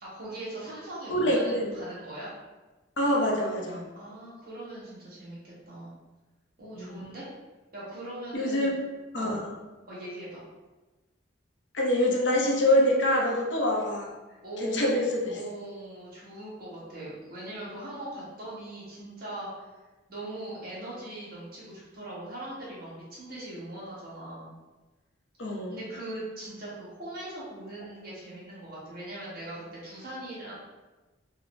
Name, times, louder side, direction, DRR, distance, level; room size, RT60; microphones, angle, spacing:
voice 1, 0.0-2.3 3.9-5.9 6.6-7.3 7.7-8.7 9.1-9.4 9.9-10.4 14.4-15.0 15.3-19.6 20.1-24.5 25.7-30.5, right 1 dB, 50° right, -8 dB, 1.3 m, -40 dB
voice 2, 1.1-1.8 3.0-3.8 6.7-7.0 8.3-8.8 9.1-9.4 11.7-14.1 14.6-15.4 25.4-25.7, left 1 dB, 70° left, -1 dB, 0.7 m, -25 dB
3.6 x 2.0 x 3.4 m, 1.2 s
head